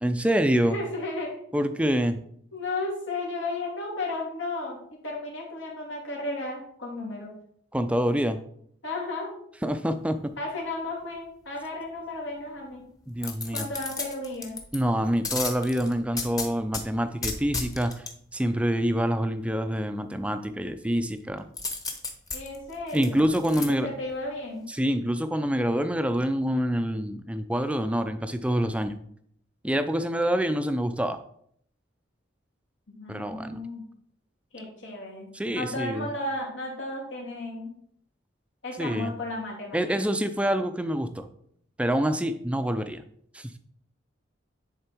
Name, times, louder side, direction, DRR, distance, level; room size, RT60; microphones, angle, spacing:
voice 1, 0.0-0.8 1.5-2.2 7.7-8.4 9.6-10.2 13.1-13.7 14.7-17.9 18.3-21.5 22.9-23.9 24.7-29.0 29.6-31.2 33.1-33.6 35.3-36.1 38.8-39.1 39.7-41.3 41.8-43.0 43.3-43.6, equal, 5° right, 9 dB, 0.5 m, -26 dB
voice 2, 0.7-1.4 2.5-7.3 8.8-9.3 10.4-12.8 13.5-14.6 22.3-24.7 32.9-33.8 34.5-37.8 38.6-39.8 40.1-40.2, left 2 dB, 80° left, -2 dB, 2.8 m, -34 dB
sound 1, 13.2-14.8 15.2-16.8 17.2-18.1 21.6-23.7 24.1-24.2, left 4 dB, 20° left, 1.0 m, -33 dB
10.0 x 4.4 x 4.5 m, 0.67 s
head